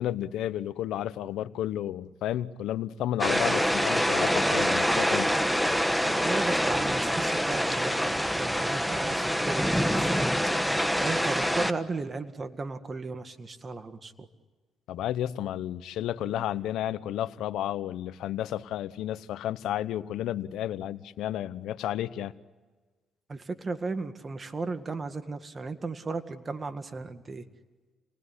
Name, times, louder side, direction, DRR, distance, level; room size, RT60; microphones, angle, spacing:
voice 1, 0.0-5.3 14.9-22.3, left 12 dB, 85° left, 14 dB, 0.9 m, -32 dB
sound 1, 3.2-11.7, equal, ahead, 1.3 m, -26 dB
voice 2, 6.1-14.3 16.4-16.5 23.3-27.4, right 3 dB, 30° right, 8 dB, 1.9 m, -35 dB
29.5 x 19.5 x 9.8 m, 1.3 s
cardioid pair, 90°, 0 cm